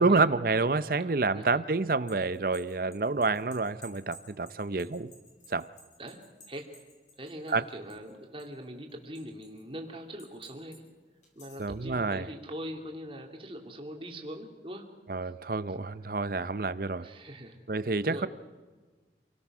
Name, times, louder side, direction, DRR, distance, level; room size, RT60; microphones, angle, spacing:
voice 1, 0.0-5.1 5.5-5.7 7.5-7.6 11.6-12.3 15.1-17.1 17.7-18.3, right 3 dB, 55° right, 15 dB, 0.7 m, -28 dB
voice 2, 1.0-1.5 6.0-6.2 6.5-6.7 7.2-10.8 11.3-14.9 17.0-17.6 17.8-18.3, equal, 30° right, 2 dB, 2.7 m, -42 dB
sound 1, 1.8-8.1 8.4-9.6 10.2-10.8 11.2-11.7, left 1 dB, 40° left, 6.1 m, -54 dB
28.0 x 18.0 x 6.2 m, 1.4 s
head